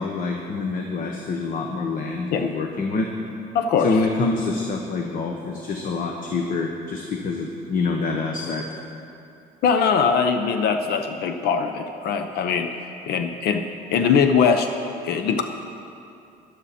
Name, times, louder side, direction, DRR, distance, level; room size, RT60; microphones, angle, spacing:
voice 1, 0.0-3.1 3.8-8.7, left 3 dB, 55° left, 2 dB, 1.1 m, -26 dB
voice 2, 3.5-3.9 9.6-12.7 13.1-14.7 15.0-15.4, left 6 dB, 70° left, 6 dB, 0.7 m, -21 dB
14.5 x 11.5 x 4.2 m, 2.6 s
cardioid pair, 110°, 17 cm